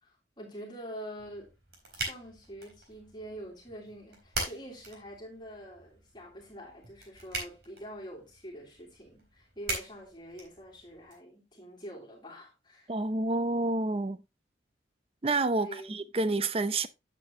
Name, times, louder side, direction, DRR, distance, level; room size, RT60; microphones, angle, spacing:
voice 1, 0.0-1.5 1.9-12.9 15.5-16.0, equal, 25° left, 3.0 m, -45 dB
sound 1, 1.2-11.1, right 3 dB, 60° right, 4.1 m, -42 dB
voice 2, 12.9-14.2 15.2-16.9, right 2 dB, 30° right, 0.5 m, -29 dB
10.0 x 7.6 x 2.8 m
head